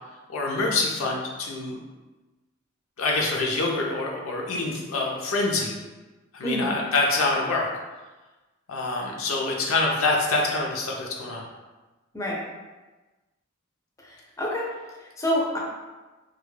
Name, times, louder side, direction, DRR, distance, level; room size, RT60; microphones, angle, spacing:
voice 1, 0.3-1.8 3.0-5.7 6.3-7.7 8.7-11.4, left 3 dB, 85° left, -1 dB, 0.5 m, -26 dB
voice 2, 6.4-6.8 12.1-12.4 14.1-14.7 15.2-15.6, equal, 15° left, -3 dB, 0.4 m, -27 dB
2.2 x 2.1 x 3.1 m, 1.2 s
head